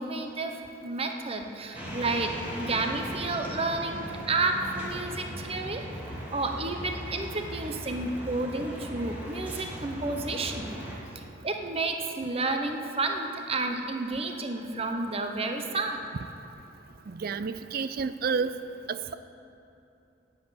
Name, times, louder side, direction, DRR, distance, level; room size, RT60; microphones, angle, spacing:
voice 1, 0.0-5.9 6.3-10.8 11.1-16.0, right 3 dB, 30° right, 4 dB, 0.9 m, -31 dB
sound 1, 1.7-11.0, equal, 10° right, 2.3 m, -38 dB
voice 2, 17.1-18.5 18.9-19.1, right 5 dB, 55° right, 13 dB, 0.4 m, -30 dB
10.0 x 7.5 x 9.1 m, 2.8 s
head